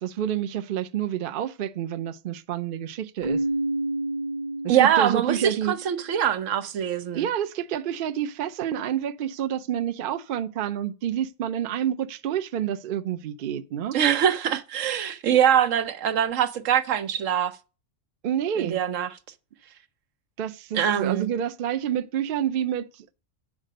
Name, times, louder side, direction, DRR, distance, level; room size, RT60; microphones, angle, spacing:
voice 1, 0.0-3.4 4.6-5.8 7.1-14.0 18.2-18.8 20.4-23.1, right 10 dB, 55° right, 0.7 m, -28 dB
Keyboard (musical), 3.2-5.9, right 2 dB, 35° right, 1.0 m, -29 dB
voice 2, 4.7-7.3 13.9-17.5 18.6-19.1 20.7-21.3, right 9 dB, 85° right, 1.1 m, -23 dB
8.4 x 5.0 x 6.4 m
omnidirectional pair, 1.3 m